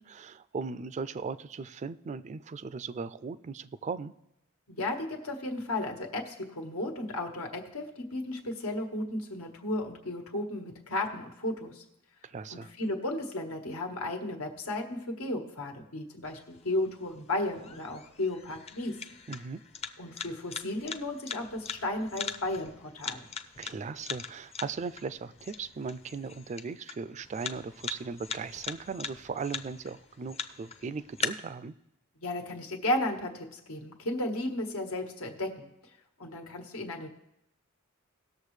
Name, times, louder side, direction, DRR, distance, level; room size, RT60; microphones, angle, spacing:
voice 1, 0.0-4.1 12.2-12.7 19.3-19.6 23.6-31.7, right 5 dB, 35° right, 16 dB, 0.3 m, -38 dB
voice 2, 4.7-11.8 12.5-19.0 20.0-23.3 32.2-35.7 36.2-37.1, left 1 dB, 90° left, 3 dB, 1.5 m, -34 dB
sound 1, 16.2-31.2, left 6 dB, 30° left, 0.5 m, -42 dB
18.5 x 6.8 x 3.2 m, 0.85 s
head